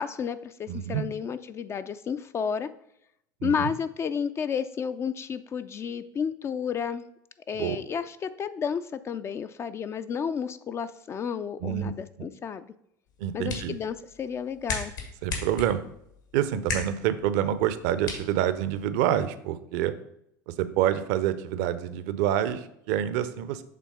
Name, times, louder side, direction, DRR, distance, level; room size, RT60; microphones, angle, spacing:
voice 1, 0.0-2.7 3.4-7.1 7.5-12.7 13.3-14.9, left 7 dB, 25° left, 12 dB, 0.3 m, -31 dB
voice 2, 0.7-1.0 3.4-3.7 7.5-7.8 11.6-11.9 13.2-13.8 15.2-15.8 16.3-19.9 20.5-23.6, right 11 dB, 55° right, 13 dB, 0.6 m, -27 dB
sound 1, 13.1-19.1, left 4 dB, 70° left, 1.8 m, -38 dB
7.4 x 3.5 x 5.5 m, 0.76 s
figure-of-eight pair, 75°, 11 cm